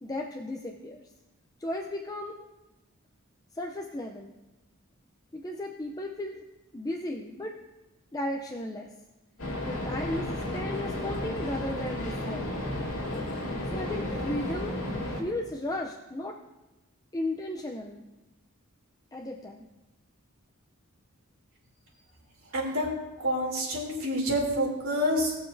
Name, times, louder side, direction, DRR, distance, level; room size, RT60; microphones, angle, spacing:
voice 1, 0.0-1.0 1.6-2.4 3.5-4.3 5.3-6.4 6.7-7.6 8.1-8.9 9.7-12.6 13.7-14.8 15.1-16.4 17.1-18.1 19.1-19.7, left 1 dB, 15° left, 1 dB, 0.5 m, -35 dB
sound 1, 9.4-15.2, left 1 dB, 75° left, 2.4 m, -33 dB
voice 2, 22.5-22.9 23.2-25.4, equal, 75° right, -2 dB, 3.0 m, -28 dB
19.5 x 6.9 x 2.7 m, 1.1 s
head